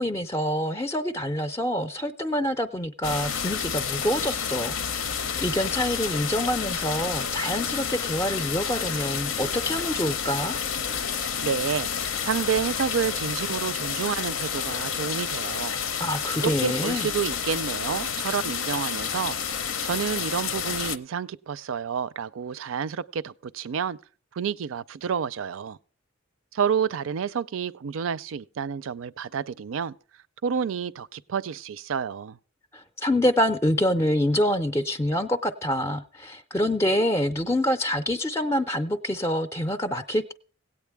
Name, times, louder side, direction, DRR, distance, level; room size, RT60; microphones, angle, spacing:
voice 1, 0.0-4.8 5.4-10.6 16.0-17.1 32.7-40.3, equal, 15° left, 0.4 m, -26 dB
sound 1, 3.0-21.0, left 7 dB, 80° left, 0.7 m, -30 dB
voice 2, 11.1-15.8 16.1-19.4 19.8-24.0 24.3-25.8 26.5-30.0 30.4-32.4, right 7 dB, 80° right, 0.4 m, -29 dB
17.0 x 8.7 x 3.4 m
head